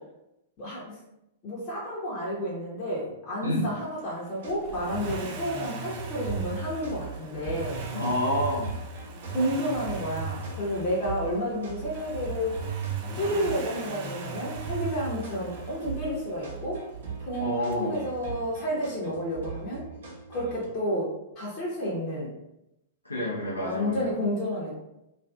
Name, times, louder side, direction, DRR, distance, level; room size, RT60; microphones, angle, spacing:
voice 1, 0.6-0.9 1.4-7.8 9.3-12.6 13.1-16.8 17.3-19.8 20.3-21.1 21.4-22.3 23.6-24.8, equal, 30° left, -7 dB, 0.8 m, -30 dB
sound 1, 4.4-20.7, right 6 dB, 65° right, 0.8 m, -41 dB
Accelerating revving vroom, 4.5-16.4 17.7-17.8, right 4 dB, 45° right, 0.4 m, -38 dB
voice 2, 7.9-8.7 17.4-17.9 23.0-24.1, left 1 dB, 90° left, -5 dB, 0.6 m, -28 dB
2.5 x 2.4 x 2.3 m, 0.87 s
figure-of-eight pair, 100°, 0 cm